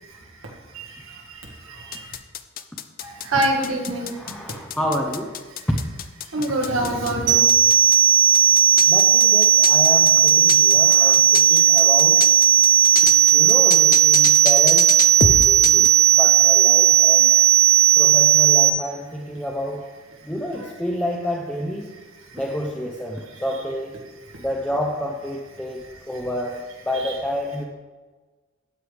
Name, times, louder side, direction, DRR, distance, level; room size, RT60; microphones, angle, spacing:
voice 1, 0.7-2.2 3.0-4.4 6.3-7.7 11.5-11.6 15.3-15.4 27.0-27.2, right 1 dB, 80° right, 0 dB, 1.9 m, -27 dB
sound 1, 1.9-8.0 8.3-15.9, left 7 dB, 45° left, 0.5 m, -27 dB
voice 2, 4.1-5.4 5.7-5.8 8.9-12.2 13.3-15.9 16.2-17.3 18.0-19.8 20.2-21.9 22.3-23.9 24.4-27.6, equal, 5° left, -1 dB, 0.7 m, -29 dB
sound 2, 7.3-18.7, right 10 dB, 40° right, 1.7 m, -15 dB
12.5 x 8.1 x 3.5 m, 1.4 s
head